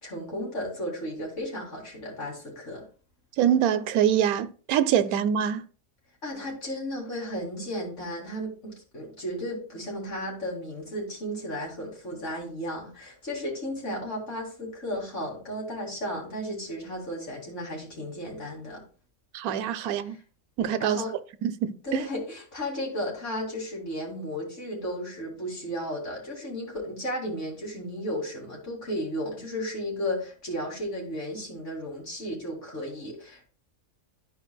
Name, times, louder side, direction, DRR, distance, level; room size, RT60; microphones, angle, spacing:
voice 1, 0.0-2.8 6.2-18.8 19.8-20.2 20.8-21.1 21.8-33.4, equal, 55° left, 2.8 m, -34 dB
voice 2, 3.4-5.6 19.3-20.2 20.6-21.0 21.4-22.0, right 9 dB, 90° right, 1.1 m, -24 dB
12.5 x 4.8 x 2.3 m
omnidirectional pair, 1.5 m